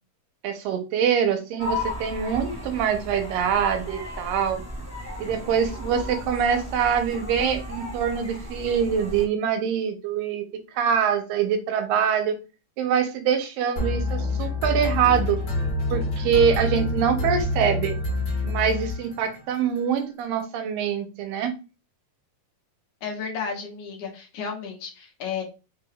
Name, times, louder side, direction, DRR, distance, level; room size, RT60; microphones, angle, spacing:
voice 1, 0.4-4.6 5.2-12.4 12.8-15.4 15.9-18.0 18.4-21.5, right 7 dB, 85° right, 7 dB, 2.4 m, -24 dB
sound 1, 1.6-9.3, left 1 dB, 10° left, 0.8 m, -35 dB
sound 2, 13.8-19.4, left 2 dB, 50° left, 1.2 m, -27 dB
voice 2, 23.0-25.4, left 6 dB, 70° left, 1 dB, 2.1 m, -33 dB
5.5 x 2.3 x 3.4 m, 0.31 s
omnidirectional pair, 4.0 m